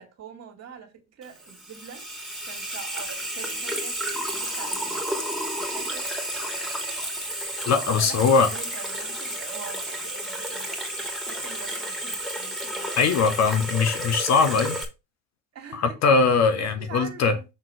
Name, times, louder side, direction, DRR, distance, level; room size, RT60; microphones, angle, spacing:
voice 1, 0.0-2.1 2.5-5.0 5.6-6.1 7.7-13.8 15.5-16.0 16.5-17.4, right 7 dB, 40° right, 2.5 m, -44 dB
Water tap faucet / Sink (filling or washing), 1.2-14.8, right 1 dB, ahead, 2.7 m, -31 dB
voice 2, 7.7-8.5 13.0-14.8 15.7-17.4, left 5 dB, 40° left, 1.2 m, -21 dB
7.0 x 3.9 x 4.5 m
hypercardioid pair, 80°, 39 cm